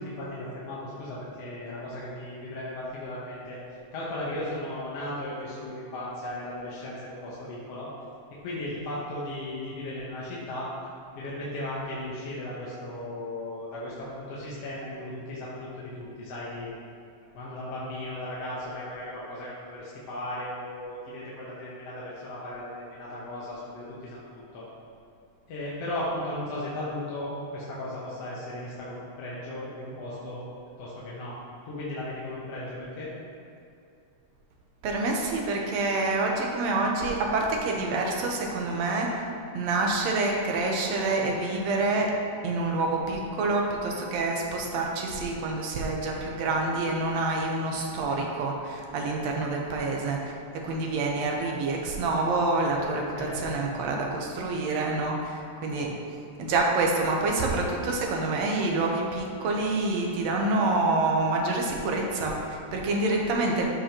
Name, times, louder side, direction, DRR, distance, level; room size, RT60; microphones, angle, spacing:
voice 1, 0.0-3.6 3.9-7.9 8.4-10.7 11.2-16.7 17.3-24.7 25.5-30.5 30.8-31.3 31.7-33.1 53.0-53.6, left 1 dB, 60° left, -8 dB, 1.9 m, -36 dB
voice 2, 34.8-39.2 39.5-42.1 42.4-50.2 50.6-55.9 56.4-63.7, right 2 dB, 65° right, 0 dB, 1.9 m, -27 dB
13.5 x 5.5 x 3.0 m, 2.6 s
omnidirectional pair, 3.6 m